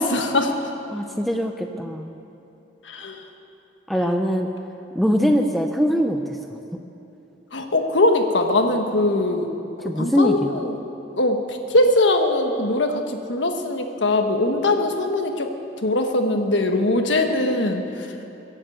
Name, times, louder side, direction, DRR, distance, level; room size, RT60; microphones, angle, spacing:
voice 1, 0.0-0.7 2.8-3.2 5.2-5.4 7.5-9.5 9.9-10.7 11.2-15.5 15.8-17.9, left 2 dB, 80° left, 5 dB, 1.4 m, -21 dB
voice 2, 0.9-2.1 3.9-4.5 4.9-6.4 9.8-10.6, equal, ahead, 4 dB, 0.6 m, -22 dB
22.5 x 8.1 x 7.9 m, 2.8 s
head